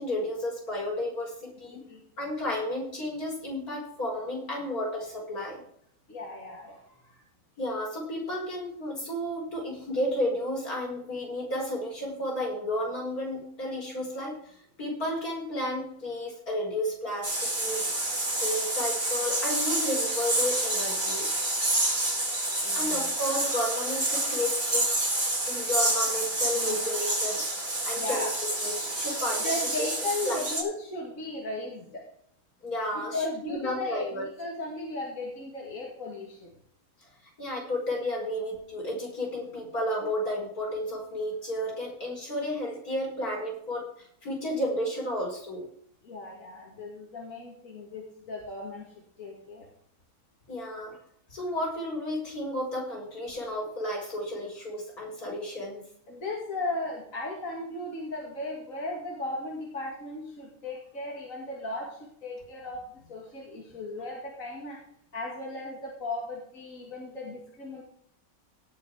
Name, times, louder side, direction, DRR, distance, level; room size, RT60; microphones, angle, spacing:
voice 1, 0.0-1.8 2.2-5.6 7.6-17.9 18.4-21.3 22.7-24.9 25.5-28.3 28.6-29.5 29.8-29.9 30.2-30.5 32.6-34.2 37.0-37.1 37.4-45.6 50.5-51.0 51.3-55.8, left 1 dB, 80° left, -2 dB, 5.7 m, -32 dB
voice 2, 6.1-7.2 22.6-23.0 26.5-26.8 27.9-28.3 29.4-32.0 32.9-36.5 46.0-48.9 49.2-49.7 56.1-64.8 65.1-67.8, left 2 dB, 60° left, -2 dB, 2.9 m, -36 dB
sound 1, 17.2-30.6, right 1 dB, 40° right, 4.1 m, -28 dB
18.5 x 6.3 x 4.9 m, 0.65 s
omnidirectional pair, 1.5 m